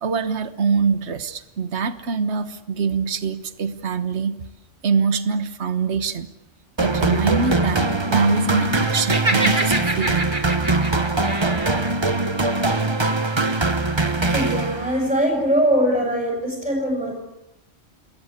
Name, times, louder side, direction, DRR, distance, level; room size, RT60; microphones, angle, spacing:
voice 1, 0.0-4.4 4.8-6.3 6.8-10.3, right 5 dB, 65° right, 11 dB, 1.6 m, -24 dB
sound 1, 6.8-15.1, right 2 dB, 25° right, 1.2 m, -22 dB
Laughter, 8.9-11.9, right 2 dB, 40° right, 3.1 m, -26 dB
voice 2, 14.3-17.1, equal, 5° right, 0 dB, 7.3 m, -21 dB
28.5 x 21.0 x 8.5 m, 0.90 s
omnidirectional pair, 1.2 m